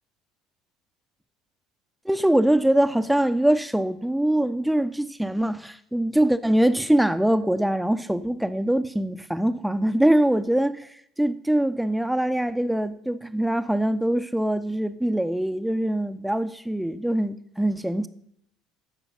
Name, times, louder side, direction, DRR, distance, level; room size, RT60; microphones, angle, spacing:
voice 1, 2.0-10.9 11.2-18.1, right 1 dB, 5° right, 0.8 m, -23 dB
15.5 x 5.7 x 5.6 m
hypercardioid pair, 65°, 0 cm